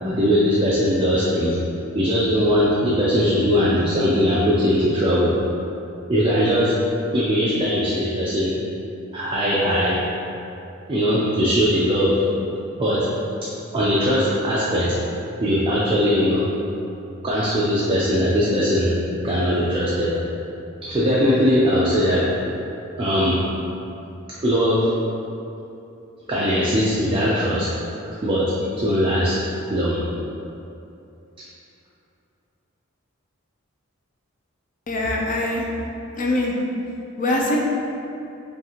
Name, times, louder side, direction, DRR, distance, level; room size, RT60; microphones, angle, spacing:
voice 1, 0.0-1.6 1.9-5.3 6.1-6.8 7.1-8.5 9.1-10.0 10.9-12.2 12.8-13.1 13.7-15.0 15.4-16.5 17.2-18.9 19.2-20.1 20.8-22.3 23.0-23.4 24.4-24.9 26.3-27.7 28.2-28.5 28.8-29.4 29.7-30.0, equal, 25° right, -7 dB, 0.4 m, -20 dB
voice 2, 34.9-35.6 36.2-36.6 37.2-37.6, left 1 dB, 35° left, -1 dB, 0.4 m, -22 dB
5.2 x 2.5 x 2.8 m, 2.8 s
head